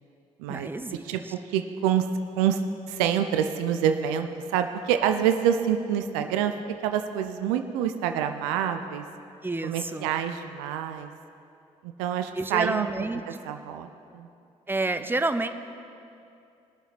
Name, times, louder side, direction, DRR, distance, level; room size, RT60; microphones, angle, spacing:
voice 1, 0.5-1.3 9.4-10.1 12.3-13.2 14.7-15.5, right 2 dB, 10° right, 9 dB, 0.7 m, -29 dB
voice 2, 1.0-2.1 2.4-2.6 2.9-6.5 6.8-9.0 9.6-11.1 11.8-12.9 13.4-14.3, right 9 dB, 80° right, 7 dB, 0.5 m, -27 dB
20.5 x 6.9 x 4.1 m, 2.6 s
hypercardioid pair, 45°, 17 cm